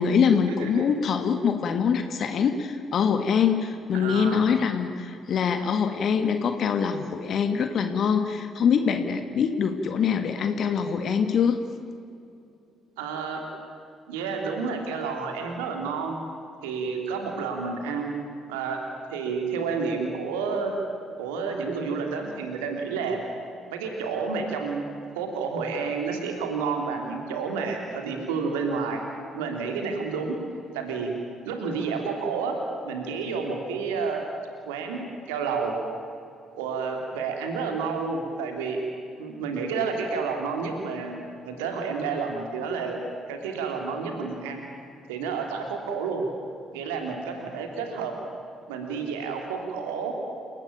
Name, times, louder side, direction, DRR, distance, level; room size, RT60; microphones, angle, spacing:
voice 1, 0.0-11.6, left 6 dB, 50° left, 7 dB, 1.7 m, -24 dB
voice 2, 3.9-4.5 13.0-13.4 14.1-16.2 16.6-18.1 18.5-18.8 19.1-20.7 21.2-23.2 23.7-24.9 25.1-29.0 29.3-30.4 30.7-31.1 31.4-32.6 32.8-34.2 34.6-35.8 36.5-38.8 39.2-41.2 41.4-43.0 43.3-44.6 45.1-46.2 46.7-48.1 48.7-50.1, right 5 dB, 75° right, 3 dB, 3.2 m, -30 dB
29.0 x 18.0 x 9.0 m, 2.6 s
figure-of-eight pair, 45°, 0 cm